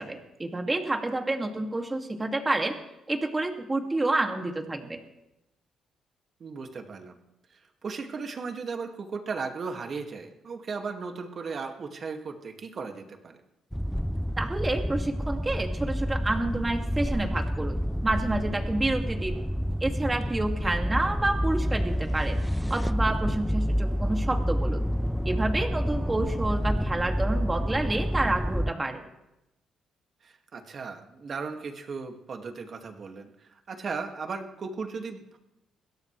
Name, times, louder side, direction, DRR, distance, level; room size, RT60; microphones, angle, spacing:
voice 1, 0.0-2.8 3.1-5.0 14.4-19.4 19.8-22.4 22.7-24.8 25.2-29.0, right 2 dB, 20° right, 3 dB, 2.4 m, -29 dB
voice 2, 6.4-7.2 7.5-13.4 20.6-20.8 30.2-35.4, right 4 dB, 50° right, 4 dB, 2.2 m, -36 dB
sound 1, 13.7-28.7, equal, ahead, 0.4 m, -28 dB
22.0 x 17.0 x 3.4 m, 0.93 s
cardioid pair, 90°, 0 cm